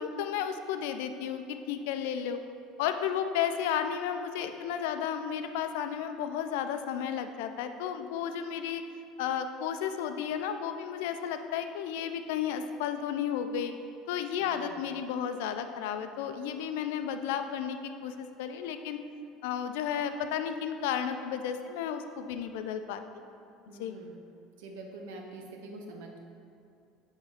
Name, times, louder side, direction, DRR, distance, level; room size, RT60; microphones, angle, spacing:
voice 1, 0.0-2.4 2.8-8.8 9.2-13.7 14.1-19.0 19.4-23.0 23.8-23.9, left 8 dB, 85° left, 8 dB, 0.4 m, -33 dB
voice 2, 14.4-14.8 23.7-24.2 24.6-26.2, right 2 dB, 90° right, 2 dB, 0.9 m, -45 dB
6.3 x 3.6 x 5.6 m, 2.6 s
cardioid pair, 140°, 0 cm